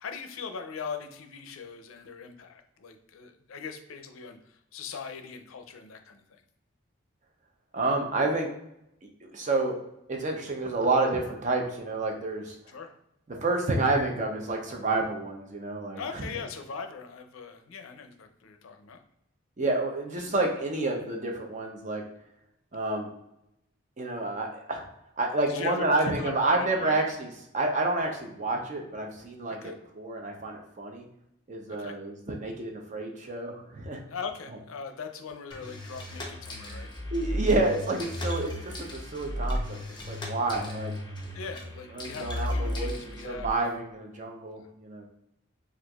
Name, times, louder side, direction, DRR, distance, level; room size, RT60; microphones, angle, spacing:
voice 1, 0.0-6.2 12.7-12.9 16.0-19.0 25.5-27.0 29.5-29.8 31.8-31.9 34.1-36.9 41.3-43.5, left 5 dB, 85° left, 7 dB, 0.5 m, -40 dB
voice 2, 7.7-8.5 9.3-9.8 10.1-12.6 13.3-16.2 19.6-22.0 22.7-23.1 24.0-24.8 25.2-27.3 27.5-31.0 31.5-34.0 37.1-38.5 38.8-39.8 40.1-40.9 41.9-45.1, right 2 dB, 35° right, 2 dB, 0.5 m, -29 dB
sound 1, 35.5-43.5, left 1 dB, 20° left, 0.6 m, -34 dB
4.3 x 2.4 x 2.3 m, 0.82 s
head